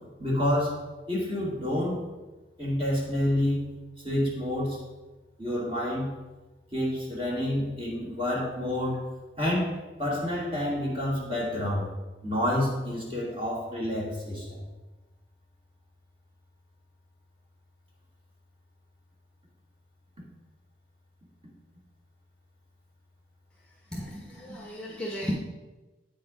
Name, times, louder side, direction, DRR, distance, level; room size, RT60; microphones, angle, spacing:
voice 1, 0.2-2.0 2.6-3.7 4.0-4.8 5.4-6.2 6.7-9.0 9.4-11.9 12.2-14.6, left 1 dB, 30° right, -5 dB, 2.4 m, -28 dB
voice 2, 23.9-25.3, left 1 dB, 5° left, -3 dB, 1.0 m, -35 dB
8.8 x 4.9 x 5.0 m, 1.1 s
head